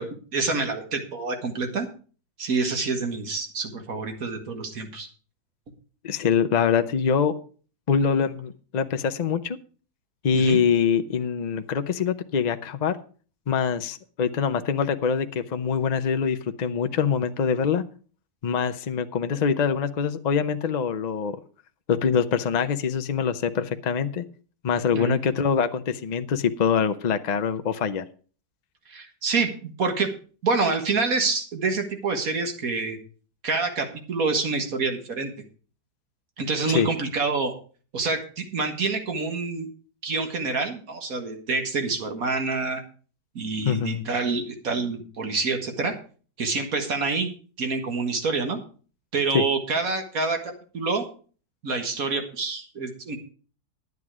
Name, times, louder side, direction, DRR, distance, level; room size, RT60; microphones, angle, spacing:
voice 1, 0.0-1.9 2.4-5.1 10.3-10.6 24.9-25.2 28.9-30.1 30.4-33.0 33.4-35.3 36.4-37.5 37.9-39.7 40.0-42.8 43.4-46.0 46.4-47.3 47.6-48.6 49.1-51.0 51.6-53.2, right 4 dB, 60° right, 5 dB, 2.1 m, -27 dB
voice 2, 6.0-7.3 7.9-9.6 10.2-13.0 13.5-17.8 18.4-21.4 21.9-24.2 24.6-28.1 36.7-36.9 43.6-44.0 49.3-49.4, left 6 dB, 75° left, 9 dB, 0.3 m, -24 dB
11.0 x 9.5 x 4.8 m, 0.40 s
omnidirectional pair, 1.7 m